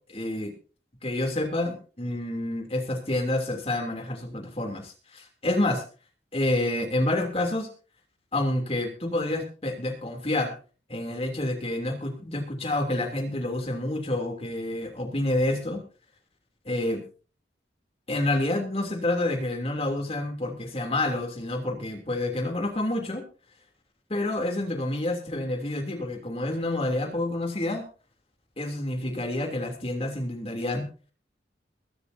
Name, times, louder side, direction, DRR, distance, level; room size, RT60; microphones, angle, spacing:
voice 1, 0.1-0.5 1.0-5.8 6.3-7.7 8.3-10.5 10.9-15.8 16.7-17.0 18.1-23.2 24.1-27.8 28.6-30.8, left 1 dB, 30° left, 3 dB, 3.0 m, -28 dB
22.0 x 12.5 x 2.8 m, 0.36 s
head